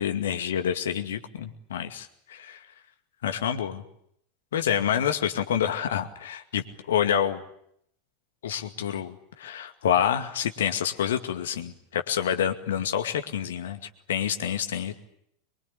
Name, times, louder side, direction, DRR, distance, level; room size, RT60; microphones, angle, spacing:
voice 1, 0.0-2.6 3.2-3.8 4.5-7.4 8.4-13.8 14.1-14.9, left 9 dB, 65° left, 6 dB, 2.2 m, -27 dB
24.0 x 22.5 x 10.0 m, 0.73 s
figure-of-eight pair, 85°, 0 cm